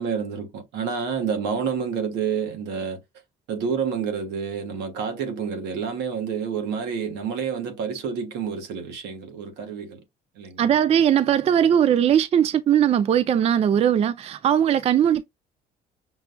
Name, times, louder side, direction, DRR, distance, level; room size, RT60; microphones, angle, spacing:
voice 1, 0.0-3.0 3.5-10.0 10.3-10.7, right 6 dB, 85° right, 1.3 m, -29 dB
voice 2, 10.6-15.2, right 9 dB, 40° right, 0.4 m, -19 dB
6.0 x 2.3 x 2.2 m
cardioid pair, 110°, 17 cm